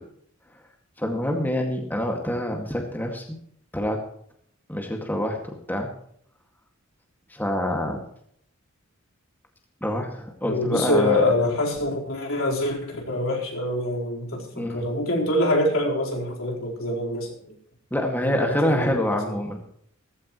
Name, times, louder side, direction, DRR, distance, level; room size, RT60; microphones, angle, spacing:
voice 1, 1.0-3.3 3.7-4.0 4.7-5.9 7.3-8.0 9.8-11.2 14.5-14.9 17.9-19.6, left 1 dB, 10° left, 2 dB, 2.1 m, -26 dB
voice 2, 10.4-17.3 18.2-19.0, left 1 dB, 70° left, -1 dB, 4.4 m, -25 dB
16.5 x 15.0 x 3.2 m, 0.65 s
head